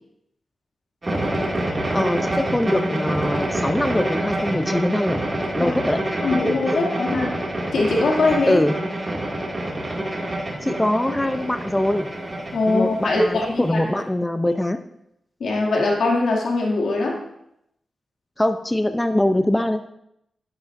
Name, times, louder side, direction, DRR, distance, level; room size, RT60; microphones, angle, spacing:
sound 1, 1.0-13.8, right 1 dB, 30° right, 2.2 m, -27 dB
voice 1, 1.9-5.2 5.5-6.0 6.7-6.8 8.5-8.8 10.6-12.1 12.6-14.8 18.4-19.8, left 1 dB, 10° left, 8 dB, 0.5 m, -22 dB
voice 2, 6.2-7.4 7.7-8.6 12.5-13.8 15.4-17.2, left 2 dB, 90° left, -2 dB, 2.4 m, -21 dB
11.5 x 10.5 x 2.6 m, 0.78 s
wide cardioid pair, 100°, 0 cm